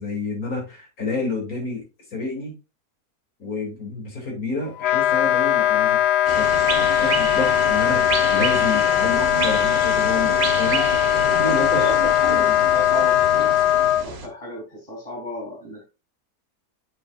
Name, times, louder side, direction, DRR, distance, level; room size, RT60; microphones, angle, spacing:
voice 1, 0.0-1.9 2.1-2.5 3.4-6.0 6.3-10.9 11.4-11.8 12.3-12.6, left 3 dB, 60° left, 0 dB, 3.4 m, -29 dB
Wind instrument woodwind instrument, 4.8-14.0, left 12 dB, 85° left, 1.1 m, -20 dB
sound 1, 6.3-14.3, right 5 dB, 45° right, 1.2 m, -29 dB
voice 2, 11.4-15.9, left 1 dB, 20° left, -2 dB, 3.2 m, -33 dB
8.2 x 6.1 x 2.5 m, 0.28 s
omnidirectional pair, 1.7 m